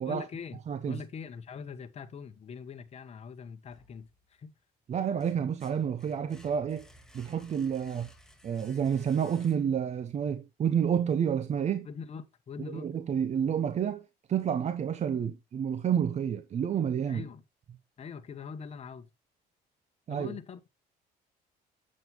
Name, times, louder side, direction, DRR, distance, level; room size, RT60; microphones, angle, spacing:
voice 1, 0.1-0.6 0.8-4.5 11.8-12.9 17.1-17.4 18.0-19.1 20.1-20.7, left 6 dB, 40° left, 1.1 m, -43 dB
voice 2, 0.7-1.0 4.9-6.9 7.1-8.1 8.4-11.9 12.7-17.2 20.1-20.3, right 8 dB, 40° right, 0.7 m, -29 dB
sound 1, 3.7-4.5 4.9-10.0, equal, 5° left, 1.8 m, -58 dB
7.8 x 7.4 x 3.0 m
cardioid pair, 110°, 17 cm